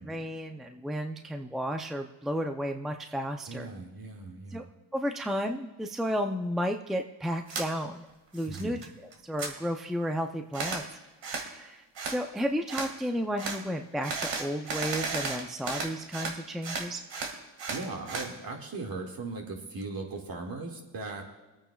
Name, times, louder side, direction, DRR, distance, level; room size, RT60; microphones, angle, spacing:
voice 1, 0.0-3.7 4.5-4.6 4.9-8.1 8.3-8.8 9.2-11.0 11.2-17.0, equal, ahead, 5 dB, 0.5 m, -33 dB
voice 2, 3.5-4.7 8.5-8.8 17.7-21.2, right 3 dB, 50° right, 2 dB, 2.2 m, -38 dB
sound 1, 7.5-7.7 8.1-8.9 9.1-9.5 10.5-10.8 11.2-11.5 11.9-12.2 12.7-12.9 13.4-13.6 14.0-16.4 16.6-18.3, right 4 dB, 70° right, 2.1 m, -34 dB
25.0 x 8.9 x 2.4 m, 1.2 s
cardioid pair, 85°, 46 cm